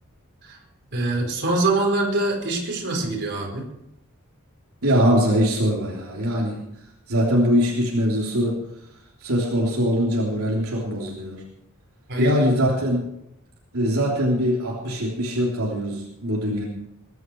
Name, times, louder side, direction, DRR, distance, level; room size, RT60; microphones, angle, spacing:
voice 1, 0.9-3.6 12.1-12.5, right 2 dB, 55° right, 0 dB, 4.5 m, -24 dB
voice 2, 4.8-6.6 7.1-8.6 9.2-11.4 12.2-13.0 13.7-16.6, equal, 75° right, -3 dB, 3.4 m, -22 dB
21.5 x 11.0 x 4.7 m, 0.81 s
head